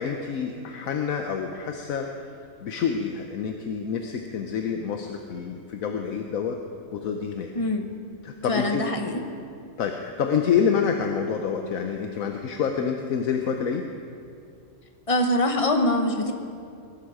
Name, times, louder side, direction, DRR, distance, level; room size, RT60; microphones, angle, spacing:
voice 1, 0.0-2.1 2.6-6.6 6.9-7.5 8.2-8.8 9.8-13.8, left 6 dB, 75° left, 4 dB, 1.3 m, -27 dB
voice 2, 8.5-9.2 15.1-16.3, left 1 dB, 25° left, 5 dB, 1.1 m, -23 dB
21.5 x 11.5 x 5.0 m, 2.4 s
omnidirectional pair, 1.5 m